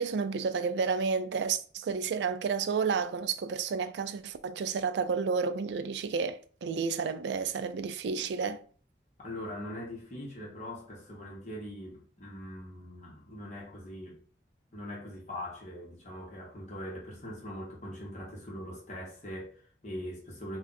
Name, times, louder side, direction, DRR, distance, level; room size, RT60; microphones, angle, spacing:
voice 1, 0.0-8.6, right 5 dB, 75° right, 0.3 m, -31 dB
voice 2, 9.2-14.2 14.7-20.6, left 1 dB, 40° left, 1.0 m, -42 dB
2.6 x 2.3 x 4.0 m
head